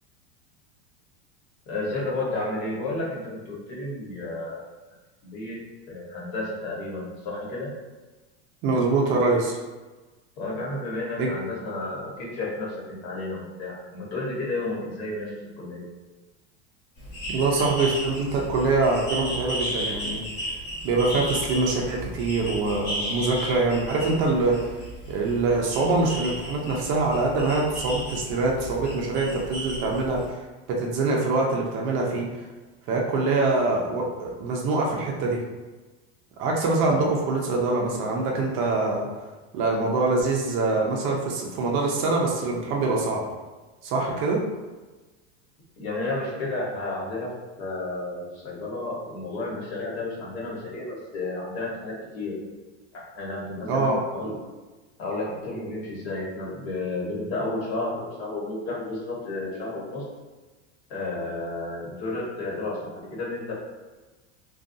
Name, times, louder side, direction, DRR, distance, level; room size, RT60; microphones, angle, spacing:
voice 1, 1.7-4.6 5.2-5.6 5.9-7.7 10.4-15.8 36.8-37.2 45.8-47.3 47.6-52.4 52.9-54.4 55.0-60.0 60.9-63.5, left 2 dB, 70° left, -5 dB, 1.1 m, -32 dB
voice 2, 8.6-9.6 11.2-11.3 17.3-20.2 20.8-24.7 25.1-30.4 30.7-32.4 32.9-35.4 36.4-39.1 39.5-43.2 43.8-44.4 53.7-54.0, right 3 dB, 40° right, -1 dB, 0.4 m, -24 dB
sound 1, 17.0-30.3, equal, 45° left, 1.0 m, -34 dB
2.5 x 2.2 x 2.5 m, 1.2 s
supercardioid pair, 150°, 34 cm